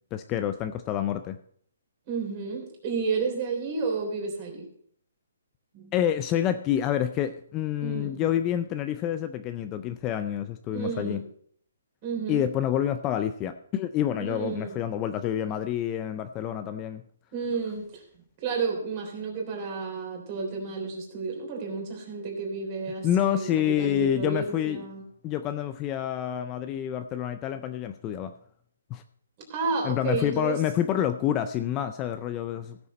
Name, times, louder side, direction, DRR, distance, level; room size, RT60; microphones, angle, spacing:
voice 1, 0.1-1.4 5.9-11.2 12.3-17.0 23.0-24.8 25.2-28.3 28.9-29.0 29.8-32.8, left 10 dB, 20° left, 9 dB, 0.4 m, -28 dB
voice 2, 2.1-4.7 5.7-5.9 7.8-8.3 10.7-11.2 12.0-12.4 14.2-14.8 17.3-18.0 18.4-25.0 29.5-30.6, right 5 dB, 30° right, 1 dB, 3.4 m, -31 dB
15.5 x 6.8 x 4.2 m, 0.64 s
hypercardioid pair, 165°, 0 cm